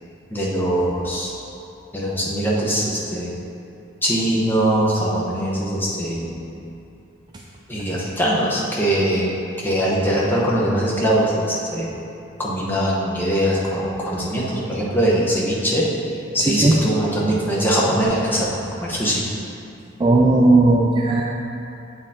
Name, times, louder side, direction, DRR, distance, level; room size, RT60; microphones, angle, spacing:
voice 1, 0.3-1.3 1.9-3.3 4.0-6.5 7.7-9.3 9.6-11.9 12.4-15.8 16.3-18.5 18.8-19.2, right 1 dB, 10° left, -6 dB, 0.9 m, -21 dB
voice 2, 16.4-16.7 17.3-17.4 20.0-21.2, right 2 dB, 20° right, -2 dB, 0.3 m, -16 dB
7.9 x 4.6 x 3.7 m, 2.7 s
head